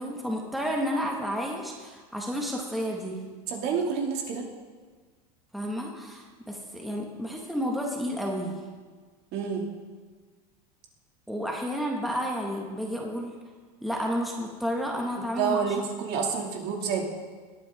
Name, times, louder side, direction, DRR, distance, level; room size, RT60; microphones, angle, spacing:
voice 1, 0.0-3.2 5.5-8.6 11.3-13.3 13.8-15.8, equal, ahead, -1 dB, 1.7 m, -31 dB
voice 2, 3.5-4.4 9.3-9.7 15.4-17.0, right 6 dB, 55° right, 1 dB, 2.4 m, -28 dB
20.5 x 9.0 x 3.6 m, 1.5 s
supercardioid pair, 120°, 20 cm